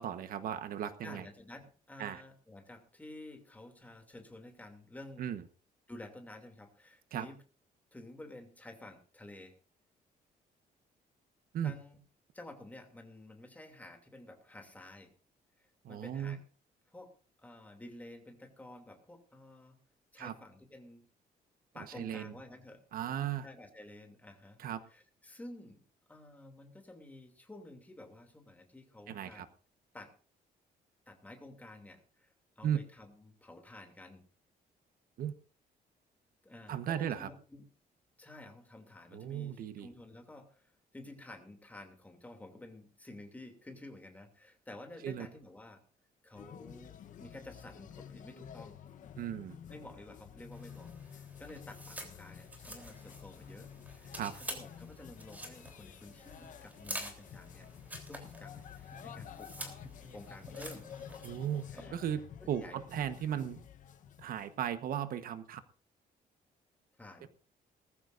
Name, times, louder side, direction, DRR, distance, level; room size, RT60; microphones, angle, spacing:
voice 1, 0.0-1.2 2.0-2.2 5.2-5.4 7.1-7.2 11.5-11.7 15.8-16.4 20.2-20.3 21.9-22.3 22.9-23.5 24.6-24.8 29.1-29.4 32.6-32.8 35.2-35.3 36.7-37.3 39.1-39.9 45.0-45.3 49.2-49.6 54.1-54.3 61.2-61.6 61.9-62.2 62.5-63.6 64.2-65.6 67.2-67.3, right 10 dB, 70° right, 11 dB, 1.2 m, -36 dB
voice 2, 1.0-5.3 5.9-7.4 7.9-9.5 11.6-12.0 12.3-15.1 15.6-16.4 16.9-17.1 17.4-19.8 20.1-21.0 21.7-22.8 23.4-24.6 24.9-25.8 26.1-29.5 29.9-30.1 31.1-34.2 36.4-37.7 38.2-45.8 46.2-48.8 49.7-57.7 58.1-59.8 60.1-60.9 61.7-62.0 62.4-62.8 67.0-67.3, left 1 dB, 10° left, 4 dB, 2.8 m, -51 dB
sound 1, 46.3-64.9, left 8 dB, 55° left, 1.0 m, -51 dB
sound 2, 50.5-61.8, right 1 dB, 10° right, 3.5 m, -48 dB
20.0 x 14.5 x 2.6 m, 0.39 s
cardioid pair, 160°, 16 cm